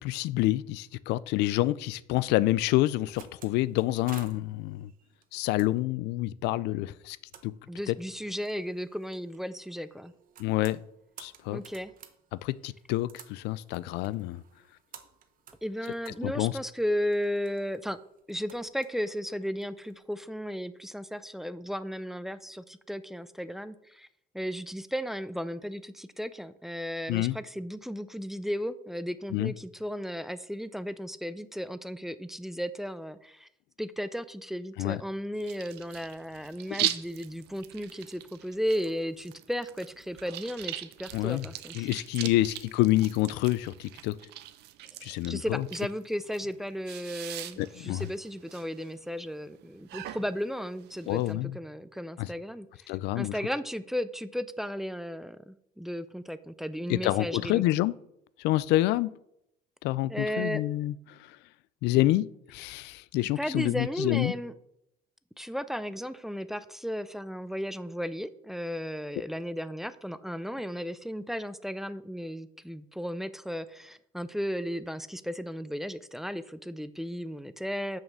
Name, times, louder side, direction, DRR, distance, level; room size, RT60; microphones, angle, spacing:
voice 1, 0.0-4.9 5.3-7.2 7.4-7.5 7.9-8.0 10.4-10.8 11.2-11.6 12.4-14.4 16.2-16.5 27.1-27.3 29.3-29.5 34.8-35.0 36.8-36.9 41.1-41.4 41.7-44.2 45.0-45.7 47.6-48.1 51.1-51.6 52.2-52.3 52.9-53.4 56.9-57.9 58.4-59.1 59.8-60.9 61.8-64.3, left 16 dB, 90° left, 19 dB, 0.4 m, -27 dB
sound 1, 2.7-20.0, right 8 dB, 55° right, 1.0 m, -55 dB
voice 2, 7.7-10.1 11.5-11.9 15.6-18.0 18.3-24.1 24.3-33.5 33.8-41.9 45.3-57.6 60.1-60.6 63.4-64.5 65.4-78.0, equal, ahead, 14 dB, 0.4 m, -35 dB
sound 2, 35.4-51.3, right 14 dB, 80° right, 0.6 m, -41 dB
6.5 x 6.4 x 6.1 m, 0.77 s
cardioid pair, 110°, 17 cm